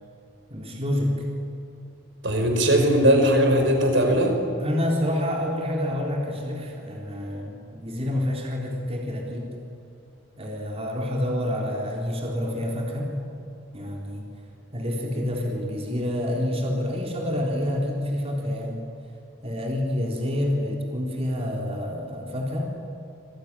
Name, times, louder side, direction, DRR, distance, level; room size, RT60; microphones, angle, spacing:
voice 1, 0.5-1.3 4.6-9.5 10.4-13.2 13.7-14.3 14.7-18.8 19.4-22.7, left 1 dB, 30° right, -1 dB, 3.8 m, -28 dB
voice 2, 2.2-4.4, equal, 70° right, 4 dB, 5.2 m, -19 dB
27.5 x 22.0 x 9.9 m, 2.6 s
head